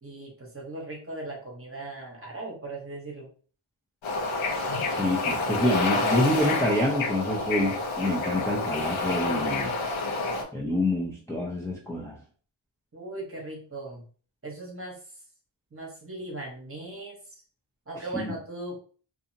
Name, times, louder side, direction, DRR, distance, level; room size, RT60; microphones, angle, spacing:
voice 1, 0.0-3.3 12.9-14.1 14.4-15.0 15.7-17.4 17.9-18.8, right 2 dB, 25° right, -1 dB, 1.0 m, -38 dB
Bird / Ocean, 4.0-10.4, left 3 dB, 75° left, 0.8 m, -28 dB
voice 2, 4.9-9.8 10.5-12.2 18.1-18.3, left 1 dB, 5° left, -5 dB, 0.6 m, -27 dB
2.7 x 2.5 x 2.7 m, 0.41 s
wide cardioid pair, 90°, 48 cm